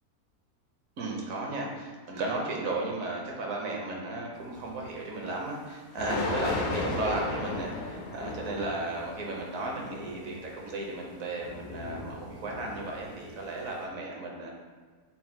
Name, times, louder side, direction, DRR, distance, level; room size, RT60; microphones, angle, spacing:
voice 1, 1.0-14.5, right 2 dB, 70° right, -1 dB, 1.1 m, -35 dB
sound 1, 4.6-4.7 5.9-13.8, left 3 dB, 70° left, 0.9 m, -36 dB
4.2 x 2.1 x 4.2 m, 1.5 s
omnidirectional pair, 1.6 m